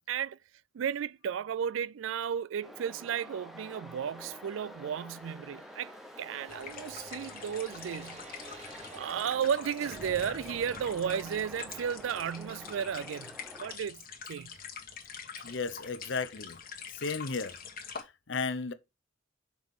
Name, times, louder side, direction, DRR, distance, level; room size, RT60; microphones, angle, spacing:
voice 1, 0.1-0.4 0.7-8.6 8.9-14.0 14.3-14.5, right 8 dB, 75° right, 0.3 m, -34 dB
sound 1, 2.6-13.8, equal, ahead, 0.8 m, -48 dB
sound 2, 4.8-9.5 9.7-14.6 15.0-15.1, right 1 dB, 35° right, 1.9 m, -53 dB
sound 3, 6.5-18.0, left 6 dB, 45° left, 1.7 m, -45 dB
voice 2, 15.4-16.6 16.9-17.6 18.0-18.7, left 4 dB, 65° left, 0.9 m, -34 dB
6.3 x 4.8 x 5.3 m
head